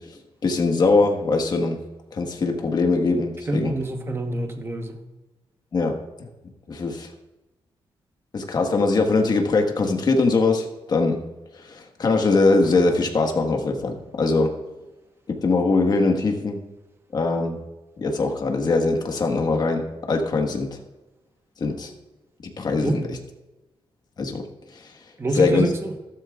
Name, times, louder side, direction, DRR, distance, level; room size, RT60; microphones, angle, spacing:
voice 1, 0.4-1.8 2.1-3.7 5.7-5.9 6.7-7.1 8.3-11.2 11.7-14.5 15.4-16.6 17.1-17.6 18.0-20.7 21.6-21.9 22.6-23.2 24.2-24.4 25.3-25.7, left 3 dB, 45° left, 3 dB, 1.4 m, -21 dB
voice 2, 3.5-5.0 22.8-23.0 25.2-25.9, right 2 dB, 25° right, 4 dB, 1.1 m, -26 dB
14.0 x 13.0 x 2.4 m, 1.1 s
wide cardioid pair, 155°, 10 cm